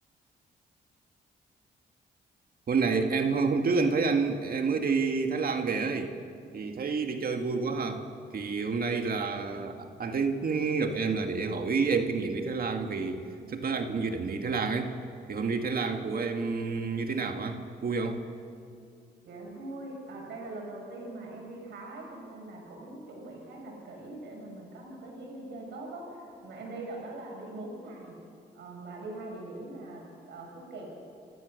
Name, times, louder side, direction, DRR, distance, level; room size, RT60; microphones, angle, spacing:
voice 1, 2.7-6.1 6.5-8.0 8.3-14.9 15.3-18.2, right 4 dB, 55° right, 5 dB, 2.1 m, -29 dB
voice 2, 19.2-28.2 28.5-30.9, right 2 dB, 85° right, -1 dB, 7.3 m, -42 dB
30.0 x 15.5 x 6.6 m, 2.3 s
cardioid pair, 70°, 18 cm